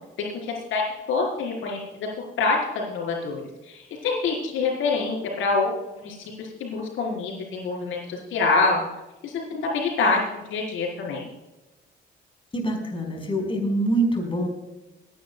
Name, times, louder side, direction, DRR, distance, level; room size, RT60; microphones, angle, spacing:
voice 1, 0.2-2.1 2.4-3.4 3.7-5.7 6.0-8.8 9.2-11.3, left 4 dB, 85° left, -1 dB, 4.5 m, -26 dB
voice 2, 12.5-14.5, right 1 dB, 25° left, 2 dB, 4.9 m, -25 dB
26.0 x 11.0 x 2.3 m, 1.0 s
cardioid pair, 90°, 20 cm